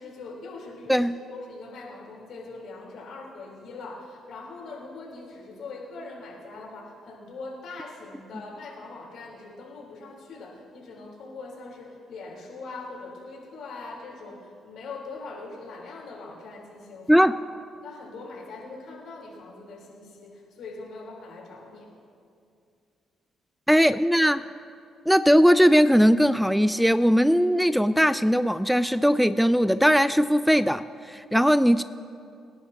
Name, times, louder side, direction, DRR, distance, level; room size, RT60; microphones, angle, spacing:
voice 1, 0.0-17.3 17.8-21.9, left 3 dB, 70° left, -3 dB, 3.9 m, -41 dB
voice 2, 23.7-24.4 25.1-31.8, equal, ahead, 14 dB, 0.3 m, -19 dB
26.5 x 11.0 x 2.9 m, 2.4 s
cardioid pair, 90°, 0 cm